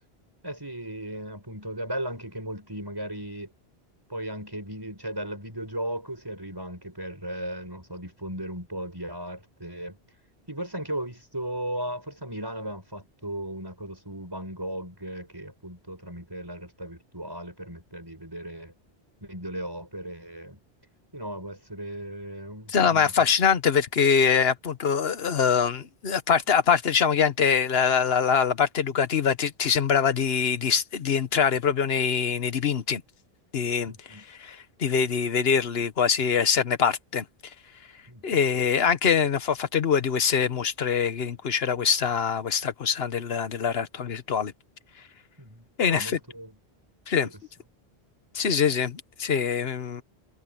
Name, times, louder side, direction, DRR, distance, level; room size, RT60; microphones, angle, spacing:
voice 1, 0.4-3.5 4.1-10.0 10.5-18.7 19.2-20.6 21.1-23.3 33.9-34.2 38.1-38.4 45.4-46.6 47.2-47.4, right 1 dB, 20° right, 6.3 m, -36 dB
voice 2, 22.7-33.0 33.5-33.9 34.3-37.2 38.2-44.5 45.8-46.2 47.1-47.3 48.3-50.0, left 6 dB, 65° left, 1.3 m, -24 dB
omnidirectional pair, 1.1 m